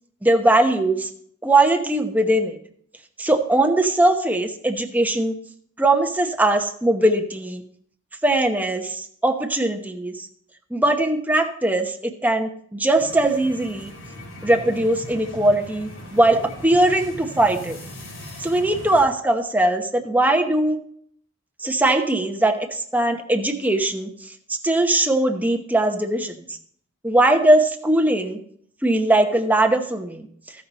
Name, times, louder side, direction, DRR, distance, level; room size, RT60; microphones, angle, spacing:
voice 1, 0.2-1.1 1.4-2.6 3.2-5.4 5.8-7.6 8.2-10.3 10.7-13.9 14.4-17.8 18.4-20.8 21.6-26.6 27.0-28.4 28.8-30.3, right 1 dB, 10° right, 4 dB, 0.9 m, -20 dB
sound 1, 13.0-19.1, equal, 75° left, 3.2 m, -39 dB
15.0 x 5.5 x 4.0 m, 0.64 s
head